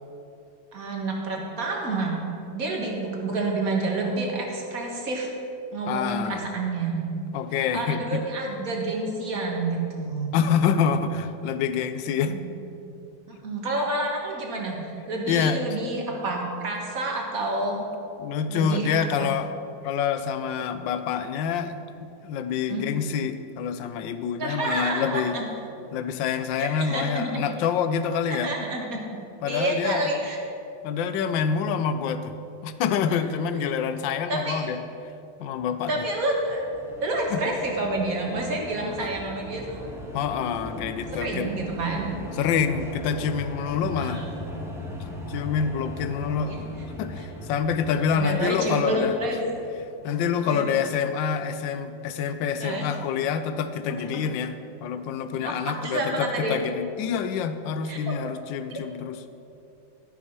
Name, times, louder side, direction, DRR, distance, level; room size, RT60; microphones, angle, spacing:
voice 1, 0.7-2.2 2.5-5.3 5.7-7.0 7.5-10.3 12.3-12.5 13.3-17.9 18.5-19.3 22.7-22.9 24.4-25.5 26.6-27.4 28.3-29.0 29.5-30.4 33.1-33.2 33.6-33.7 34.3-34.7 35.9-36.6 37.0-39.9 40.7-40.8 41.1-42.1 44.0-44.3 46.5-46.6 47.2-47.3 48.1-49.4 50.5-50.7 52.6-52.9 53.9-54.2 55.3-56.6 57.9-58.2 58.7-58.8, right 2 dB, 50° right, 0 dB, 1.9 m, -29 dB
voice 2, 5.9-6.5 7.3-8.2 10.3-12.4 15.3-15.6 18.2-19.5 19.8-21.8 22.2-25.4 25.9-28.5 29.4-30.1 30.8-32.3 32.6-34.8 35.4-36.0 37.3-37.4 40.1-41.5 42.4-44.2 45.3-46.6 47.0-49.1 50.0-54.5 54.8-59.2, left 7 dB, 85° left, 11 dB, 1.3 m, -26 dB
sound 1, 36.2-50.2, left 1 dB, ahead, 1.0 m, -39 dB
12.5 x 6.4 x 5.9 m, 2.7 s
omnidirectional pair, 2.0 m